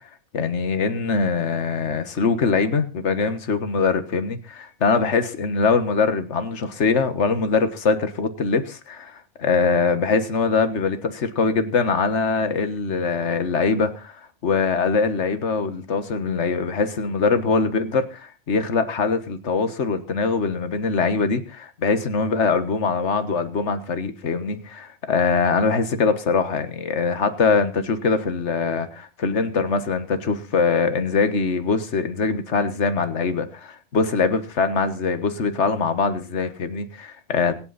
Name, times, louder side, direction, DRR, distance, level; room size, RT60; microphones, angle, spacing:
voice 1, 0.3-14.2 14.4-37.5, left 4 dB, 60° left, 9 dB, 1.7 m, -22 dB
25.5 x 8.7 x 4.1 m, 0.33 s
omnidirectional pair, 1.3 m